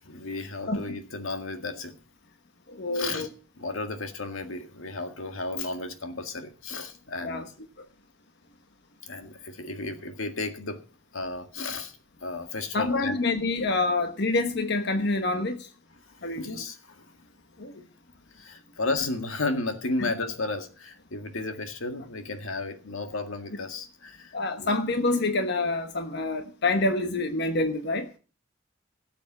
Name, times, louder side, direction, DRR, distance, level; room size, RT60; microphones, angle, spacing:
voice 1, 0.0-2.0 2.9-3.3 3.6-7.5 9.0-10.8 11.1-13.2 16.3-17.1 18.3-24.8, left 3 dB, 85° left, 6 dB, 1.9 m, -33 dB
voice 2, 2.7-3.3 7.2-7.5 7.8-7.9 12.7-15.7 16.2-16.6 17.6-17.8 20.0-20.1 24.3-28.1, left 2 dB, 55° left, 6 dB, 1.2 m, -27 dB
17.5 x 7.1 x 5.9 m, 0.37 s
head